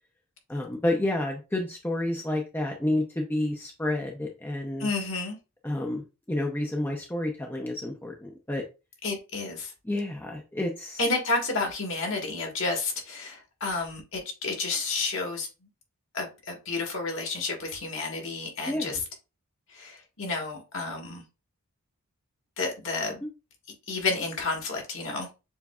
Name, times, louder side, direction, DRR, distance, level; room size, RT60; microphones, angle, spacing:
voice 1, 0.5-4.9 5.6-8.6 9.9-11.0 18.7-18.9, left 1 dB, 10° left, 0.5 m, -30 dB
voice 2, 4.8-5.4 9.0-9.7 11.0-15.5 16.1-19.0 19.7-21.2 22.6-23.2 23.9-25.3, left 3 dB, 60° left, 1.4 m, -31 dB
7.0 x 2.6 x 2.3 m
head